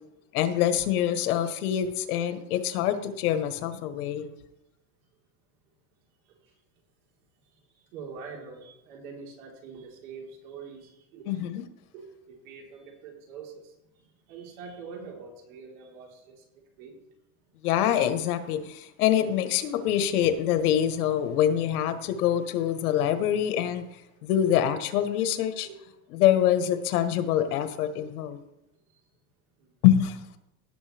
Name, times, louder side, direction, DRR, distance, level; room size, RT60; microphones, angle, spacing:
voice 1, 0.3-4.3 11.3-11.6 17.6-23.8 24.2-25.7 26.1-28.4 29.8-30.2, left 10 dB, 85° left, 10 dB, 1.3 m, -25 dB
voice 2, 7.9-11.5 11.9-13.7 14.3-16.4 16.8-17.0 25.6-25.8 29.6-29.7, right 5 dB, 70° right, -1 dB, 4.1 m, -44 dB
17.5 x 7.0 x 3.4 m, 0.91 s
supercardioid pair, 165°, 43 cm